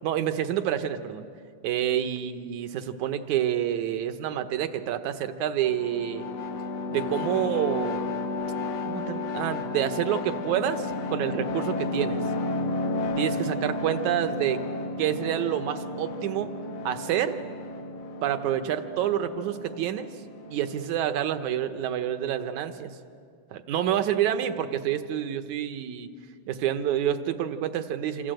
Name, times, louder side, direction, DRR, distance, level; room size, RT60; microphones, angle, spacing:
voice 1, 0.0-1.3 1.6-6.3 6.9-8.1 8.8-12.2 13.2-14.6 15.0-16.5 16.9-17.4 18.2-20.1 20.5-23.0 23.5-26.1 26.5-28.3, right 10 dB, 75° right, 9 dB, 2.4 m, -28 dB
sound 1, 5.6-21.0, left 2 dB, 60° left, 2.2 m, -32 dB
27.5 x 26.5 x 7.8 m, 2.3 s
omnidirectional pair, 3.5 m